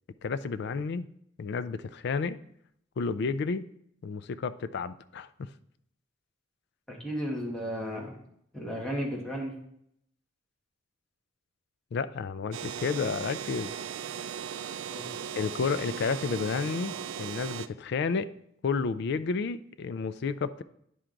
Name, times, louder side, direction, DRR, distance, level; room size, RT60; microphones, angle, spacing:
voice 1, 0.2-1.1 1.4-2.4 3.0-3.7 4.0-5.5 11.9-13.7 15.4-18.3 18.6-20.6, left 5 dB, 55° left, 14 dB, 0.3 m, -31 dB
voice 2, 6.9-8.2 8.5-9.5 14.9-15.1, equal, 5° left, -3 dB, 1.4 m, -34 dB
sound 1, 12.5-17.7, right 8 dB, 75° right, 0.3 m, -37 dB
10.0 x 4.5 x 3.8 m, 0.73 s
head